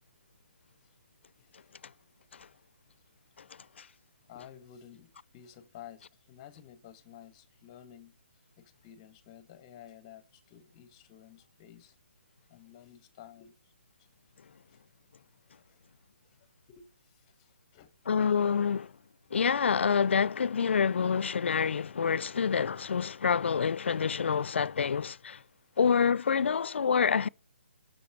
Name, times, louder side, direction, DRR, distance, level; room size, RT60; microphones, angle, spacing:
voice 1, 1.4-1.7 4.3-8.1 8.6-11.9 12.5-13.7 14.7-14.8 15.5-15.9 16.2-16.4 16.7-18.0, left 10 dB, 25° left, 1.2 m, -53 dB
voice 2, 18.1-18.9 19.3-25.4 25.8-27.3, left 6 dB, 70° left, 0.5 m, -27 dB
8.4 x 6.6 x 8.2 m
hypercardioid pair, 160°, 6 cm